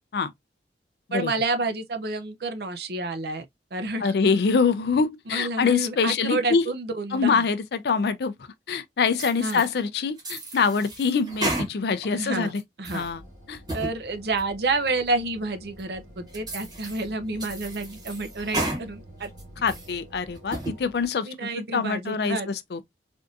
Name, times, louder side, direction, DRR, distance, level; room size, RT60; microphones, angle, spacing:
voice 1, 1.1-3.4 3.7-4.1 5.3-7.4 9.4-9.6 12.1-12.5 12.8-13.1 13.7-19.3 21.2-22.5, right 3 dB, 60° right, 0.6 m, -29 dB
voice 2, 4.0-6.6 7.1-8.3 8.7-12.6 12.9-13.2 13.5-13.6 19.6-21.3 21.7-22.8, left 5 dB, 65° left, 0.4 m, -24 dB
sound 1, 9.1-9.7 10.2-12.1 12.5-13.1 13.5-13.9 14.4-14.5 15.1-15.2 15.8-15.9 16.3-17.0 17.4-18.8 19.2-19.9 20.3-20.8, right 1 dB, 25° right, 1.2 m, -33 dB
sound 2, 12.9-21.1, equal, 45° right, 1.3 m, -48 dB
3.5 x 2.6 x 2.4 m
head